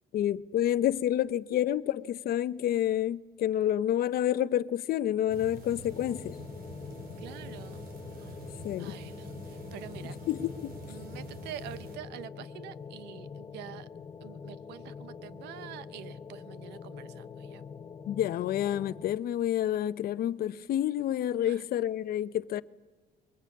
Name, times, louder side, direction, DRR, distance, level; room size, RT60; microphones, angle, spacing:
voice 1, 0.1-6.4 8.6-8.9 10.3-10.7 18.1-22.6, left 11 dB, 65° left, 0.8 m, -29 dB
sound 1, 5.3-12.0, right 1 dB, 60° right, 4.8 m, -46 dB
sound 2, 5.9-19.2, left 6 dB, 25° left, 1.0 m, -45 dB
voice 2, 7.2-7.8 8.2-8.4 8.8-10.2 10.9-13.9 14.2-17.6 21.4-21.6, right 12 dB, 85° right, 0.9 m, -46 dB
22.5 x 21.5 x 8.6 m
cardioid pair, 110°, 17 cm